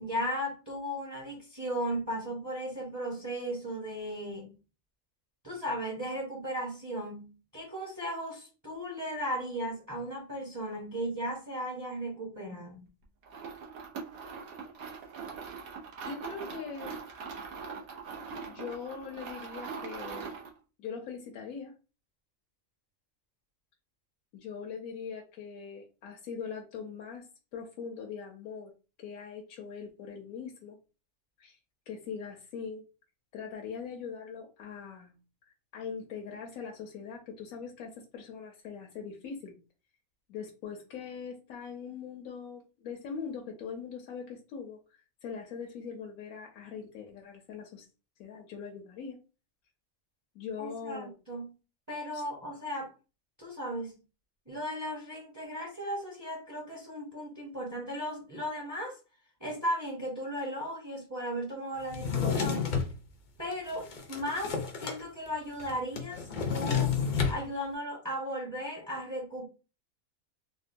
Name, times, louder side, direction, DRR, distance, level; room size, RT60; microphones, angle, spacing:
voice 1, 0.0-4.5 5.4-12.8 50.6-51.5 51.9-52.9 53.4-54.0 54.5-59.0 59.4-62.7 63.4-67.0 67.3-69.4, equal, 15° right, 0.7 m, -36 dB
sound 1, 13.2-20.6, right 5 dB, 80° right, 1.2 m, -42 dB
voice 2, 16.0-16.9 18.5-20.3 20.8-21.7 24.3-27.3 27.5-28.7 29.0-30.8 31.4-31.6 31.9-32.8 33.3-35.2 35.5-39.6 40.3-47.9 48.2-49.2 50.3-51.1 52.1-52.2, left 6 dB, 80° left, 1.0 m, -41 dB
Drawer open or close, 61.9-62.9 63.5-65.0 65.3-65.4 65.6-67.4, left 6 dB, 60° left, 0.5 m, -30 dB
3.6 x 2.2 x 2.5 m
omnidirectional pair, 1.5 m